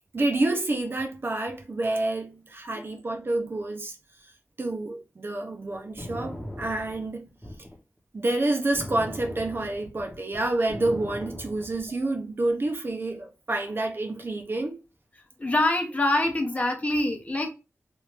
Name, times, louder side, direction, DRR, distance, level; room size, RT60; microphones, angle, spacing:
voice 1, 0.1-4.0 4.6-7.3 8.1-14.8, right 2 dB, 45° right, 0.8 m, -28 dB
sound 1, 5.7-7.8 8.7-12.0, left 1 dB, 5° left, 0.9 m, -39 dB
voice 2, 15.4-17.5, left 2 dB, 30° left, 0.8 m, -25 dB
3.1 x 2.6 x 3.3 m
wide cardioid pair, 95°, 5 cm